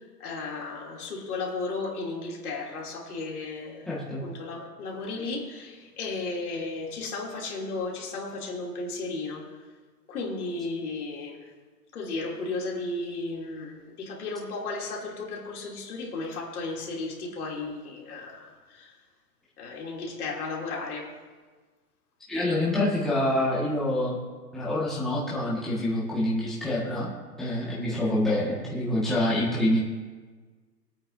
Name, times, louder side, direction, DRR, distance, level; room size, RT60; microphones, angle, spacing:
voice 1, 0.2-3.9 4.2-9.4 10.1-11.4 11.9-18.9 19.6-21.1, left 3 dB, 60° left, -3 dB, 3.2 m, -34 dB
voice 2, 3.9-4.2 22.3-24.2 24.5-27.1 27.4-29.8, left 1 dB, ahead, -8 dB, 1.8 m, -26 dB
22.0 x 8.7 x 2.8 m, 1.4 s
hypercardioid pair, 145°, 49 cm